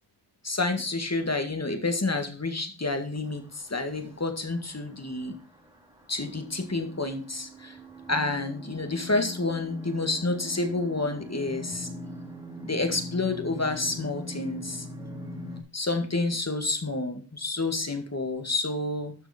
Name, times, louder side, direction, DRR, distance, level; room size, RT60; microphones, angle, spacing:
voice 1, 0.4-5.4 6.1-7.8 8.1-11.9 12.6-14.9 15.7-19.1, left 2 dB, 35° left, 6 dB, 2.0 m, -29 dB
sound 1, 3.3-15.6, left 1 dB, 10° right, 2.9 m, -42 dB
12.5 x 6.2 x 4.4 m, 0.37 s
wide cardioid pair, 75°, 43 cm